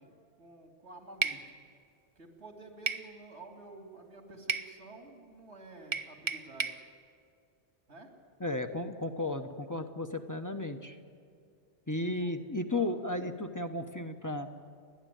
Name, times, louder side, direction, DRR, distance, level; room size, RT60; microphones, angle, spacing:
voice 1, 0.0-1.4 2.2-6.9 7.9-8.1 11.8-12.3 12.7-13.0, right 2 dB, 90° right, 3 dB, 3.2 m, -51 dB
sound 1, 1.2-1.4 2.9-3.1 4.5-4.7 5.9-6.8, right 4 dB, 30° right, 0.7 m, -32 dB
voice 2, 8.4-11.0 11.9-14.5, left 2 dB, 20° left, 6 dB, 1.0 m, -34 dB
30.0 x 11.5 x 9.3 m, 2.3 s
omnidirectional pair, 1.1 m